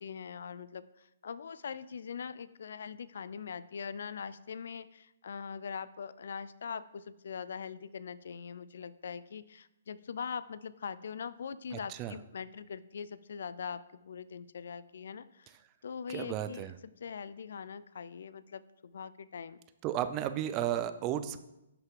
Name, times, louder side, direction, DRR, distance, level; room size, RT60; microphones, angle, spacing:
voice 1, 0.0-15.5 15.8-19.6 20.6-20.9, left 6 dB, 70° left, 16 dB, 0.4 m, -42 dB
voice 2, 11.7-12.1 16.1-16.7 19.8-21.4, right 11 dB, 25° right, 11 dB, 0.5 m, -34 dB
11.5 x 5.7 x 3.7 m, 0.90 s
hypercardioid pair, 150°, 0 cm